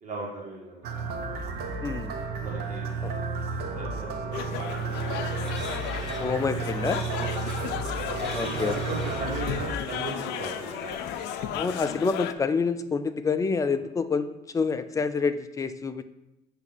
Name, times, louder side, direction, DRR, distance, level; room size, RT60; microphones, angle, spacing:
voice 1, 0.0-0.9 2.4-3.2 3.7-4.4 5.0-5.6 7.1-7.6 8.2-11.7 13.7-13.8, right 2 dB, 50° right, -3 dB, 1.6 m, -38 dB
sound 1, 0.8-9.7, right 4 dB, 70° right, 0.8 m, -32 dB
voice 2, 1.8-2.1 3.0-3.1 6.2-7.0 8.3-8.8 11.5-16.0, left 5 dB, 20° left, 10 dB, 0.4 m, -27 dB
sound 2, 4.3-12.3, left 10 dB, 90° left, 0.4 m, -34 dB
sound 3, 4.6-11.4, left 1 dB, ahead, 2.0 m, -44 dB
7.6 x 3.0 x 5.7 m, 0.92 s
cardioid pair, 110°, 17 cm